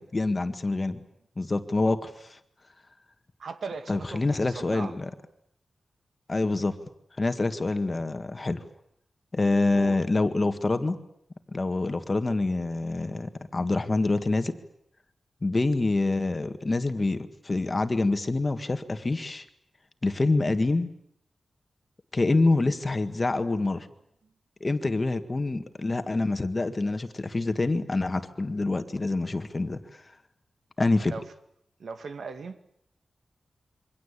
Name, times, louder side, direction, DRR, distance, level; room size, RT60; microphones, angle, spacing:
voice 1, 0.1-1.0 1.4-2.4 3.9-5.1 6.3-6.8 7.2-8.6 9.3-11.0 11.5-14.6 15.4-19.5 20.0-20.9 22.1-23.9 24.6-29.8 30.8-31.1, left 2 dB, 25° left, 8 dB, 1.8 m, -26 dB
voice 2, 3.4-4.9 9.7-10.0 31.1-31.2 31.8-32.6, right 4 dB, 75° right, 8 dB, 2.2 m, -38 dB
27.5 x 24.5 x 8.4 m, 0.74 s
wide cardioid pair, 160°, 0 cm